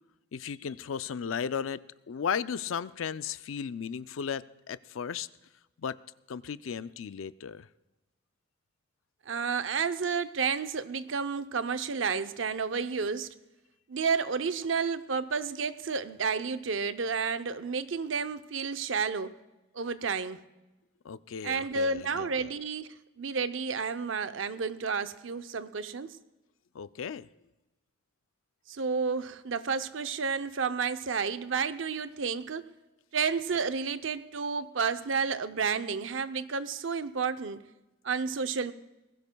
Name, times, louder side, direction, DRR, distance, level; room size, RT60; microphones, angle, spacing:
voice 1, 0.3-5.3 5.8-6.0 6.3-7.7 21.0-22.5 26.7-27.3, left 7 dB, 80° left, 15 dB, 0.4 m, -35 dB
voice 2, 9.3-13.3 13.9-19.3 19.7-20.4 21.4-26.2 28.7-32.6 33.1-37.6 38.0-38.7, right 5 dB, 70° right, 10 dB, 0.6 m, -31 dB
20.5 x 16.5 x 2.3 m, 1.0 s
head